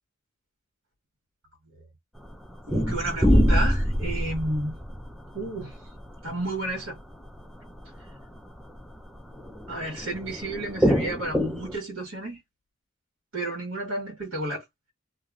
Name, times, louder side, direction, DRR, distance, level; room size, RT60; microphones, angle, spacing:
sound 1, 2.3-2.4 2.7-6.7 7.0-7.1 7.4-7.5 7.8-8.1 8.4-8.5 8.7-11.8, equal, ahead, 0.4 m, -25 dB
voice 1, 2.7-4.7 5.3-5.8 6.2-7.0 9.7-12.4 13.3-14.6, right 2 dB, 70° right, 1.8 m, -31 dB
2.9 x 2.6 x 2.5 m
head